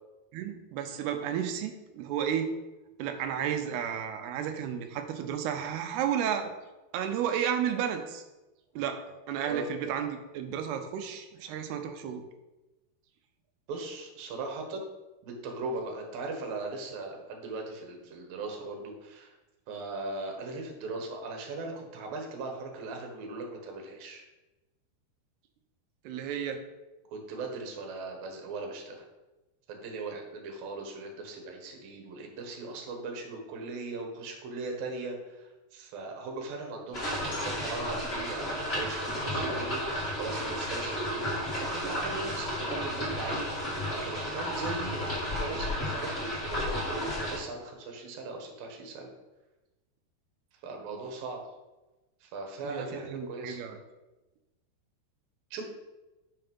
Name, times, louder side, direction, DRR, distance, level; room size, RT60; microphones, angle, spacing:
voice 1, 0.3-2.5 3.0-6.5 6.9-8.2 8.8-9.0 9.3-12.2 26.1-26.6 52.6-53.8, right 9 dB, 85° right, 6 dB, 2.8 m, -32 dB
voice 2, 13.7-14.8 15.2-19.3 19.7-24.2 27.1-29.0 29.7-39.9 40.2-43.5 43.9-49.1 50.6-51.4 52.2-53.6 55.5-55.6, right 3 dB, 70° right, 2 dB, 2.9 m, -39 dB
sound 1, 36.9-47.4, equal, 20° left, 1.8 m, -33 dB
6.7 x 5.7 x 5.4 m, 1.1 s
omnidirectional pair, 4.6 m